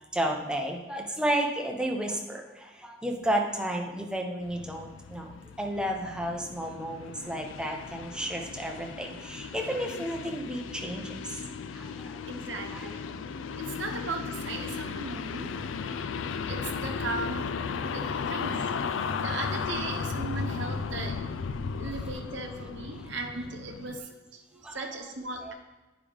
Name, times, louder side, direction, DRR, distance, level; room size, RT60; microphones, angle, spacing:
voice 1, 0.1-5.3 5.6-11.4 11.7-12.2 12.7-12.9 19.3-19.4 24.5-24.9 25.4-25.5, right 1 dB, 5° right, 1 dB, 0.8 m, -32 dB
sound 1, 4.4-24.0, left 5 dB, 70° left, 0.4 m, -35 dB
voice 2, 12.3-13.1 13.6-15.5 16.3-17.6 17.9-18.7 19.2-21.2 21.8-24.4 24.7-25.5, right 3 dB, 65° right, 3 dB, 0.9 m, -37 dB
9.1 x 4.9 x 3.5 m, 1.1 s
head